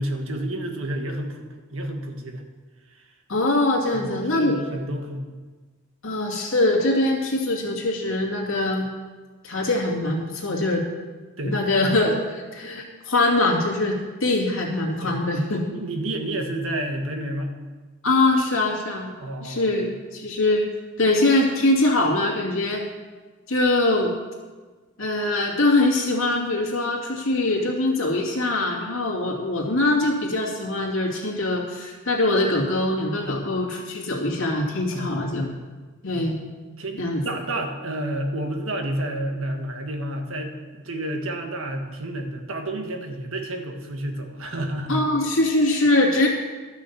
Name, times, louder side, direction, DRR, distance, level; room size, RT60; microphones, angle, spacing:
voice 1, 0.0-2.4 2.8-3.1 3.9-5.3 11.4-11.9 15.0-15.2 15.7-17.5 19.2-19.7 33.2-33.5 34.9-35.1 36.1-36.3 36.8-45.0, right 1 dB, 75° right, 3 dB, 1.6 m, -30 dB
voice 2, 3.3-4.6 6.0-8.9 9.4-10.8 11.4-12.2 12.5-14.0 14.2-15.6 18.0-19.1 19.4-20.7 21.0-22.8 23.5-24.1 25.0-35.5 36.0-36.4 37.0-37.2 44.9-46.3, left 2 dB, 70° left, -2 dB, 2.5 m, -22 dB
12.5 x 6.3 x 7.0 m, 1.3 s
head